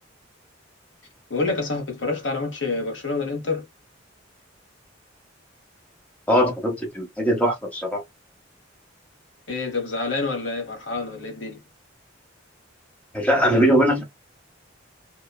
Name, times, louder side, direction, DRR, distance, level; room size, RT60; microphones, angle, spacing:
voice 1, 1.3-3.6 9.5-11.6, left 3 dB, 65° left, 1.1 m, -27 dB
voice 2, 6.3-8.0 13.1-14.0, equal, 10° left, 0.9 m, -20 dB
3.0 x 2.1 x 2.3 m
head